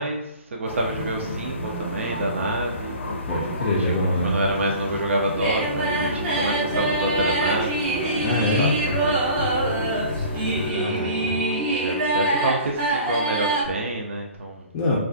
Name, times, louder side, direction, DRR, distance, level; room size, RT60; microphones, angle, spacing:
voice 1, 0.0-3.0 3.3-3.5 4.2-9.4 10.7-14.7, right 1 dB, 80° right, 1 dB, 0.4 m, -28 dB
sound 1, 0.7-10.7, left 2 dB, 75° left, 0.5 m, -31 dB
voice 2, 3.2-4.4 8.2-8.7 10.7-11.4 14.7-15.0, left 1 dB, 25° left, -5 dB, 0.4 m, -24 dB
sound 2, 5.3-13.6, right 2 dB, 25° right, 0.6 m, -25 dB
2.3 x 2.3 x 2.4 m, 0.89 s
hypercardioid pair, 150°, 7 cm